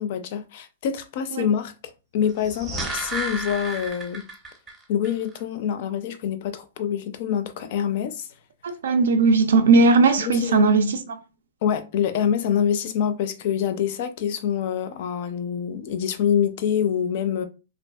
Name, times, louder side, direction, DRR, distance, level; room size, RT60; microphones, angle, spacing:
voice 1, 0.0-1.7 2.1-4.3 4.9-8.3 10.2-10.7 11.6-17.5, left 8 dB, 45° left, 0.4 m, -25 dB
sound 1, 2.3-4.8 5.0-5.1, right 2 dB, 10° right, 0.6 m, -32 dB
voice 2, 8.6-11.2, right 3 dB, 85° right, 0.4 m, -18 dB
2.6 x 2.3 x 2.2 m
hypercardioid pair, 165°, 0 cm